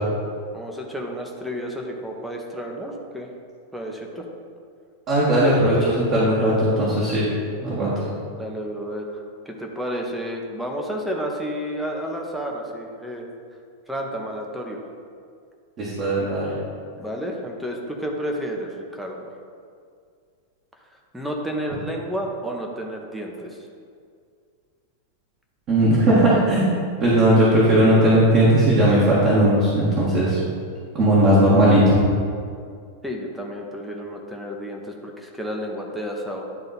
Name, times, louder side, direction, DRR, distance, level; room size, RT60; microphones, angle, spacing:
voice 1, 0.5-3.3 3.7-4.2 8.4-13.3 13.9-14.9 17.0-19.3 21.1-23.6 33.0-36.4, equal, ahead, 0 dB, 1.0 m, -31 dB
voice 2, 5.1-7.2 7.6-7.9 15.8-16.5 25.7-26.7 27.0-30.4 30.9-32.0, right 1 dB, 35° right, -8 dB, 1.9 m, -17 dB
10.5 x 3.9 x 4.2 m, 2.2 s
figure-of-eight pair, 90°, 0 cm